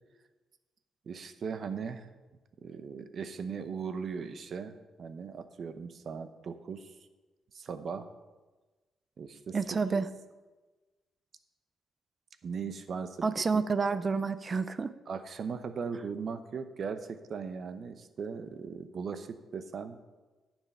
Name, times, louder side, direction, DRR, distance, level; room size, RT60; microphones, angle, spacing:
voice 1, 1.1-2.1 2.6-7.0 7.5-8.1 9.2-10.0 12.4-13.6 13.9-14.0 15.1-20.0, right 5 dB, 50° right, 10 dB, 0.8 m, -38 dB
voice 2, 9.5-10.1 13.2-14.9, right 4 dB, 30° right, 14 dB, 0.5 m, -29 dB
10.5 x 7.4 x 5.6 m, 1.2 s
cardioid pair, 100°, 0 cm